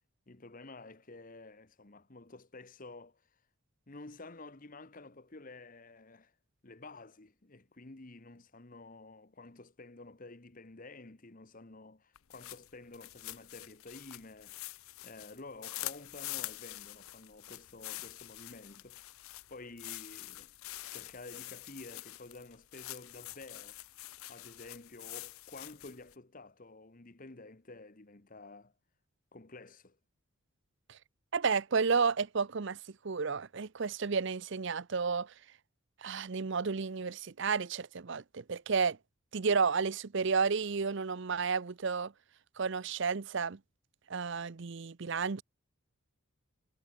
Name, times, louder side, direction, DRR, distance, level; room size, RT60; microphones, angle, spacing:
voice 1, 0.3-3.4 3.9-6.3 6.6-14.6 15.0-19.1 19.5-20.5 20.9-23.8 24.3-28.7 29.3-30.0, left 2 dB, 40° left, 1.1 m, -51 dB
sound 1, 12.2-26.1, left 17 dB, 75° left, 0.6 m, -46 dB
voice 2, 31.3-32.8 33.0-35.3 36.0-39.0 39.3-42.1 42.6-43.6 44.1-45.4, right 5 dB, 55° right, 0.6 m, -31 dB
head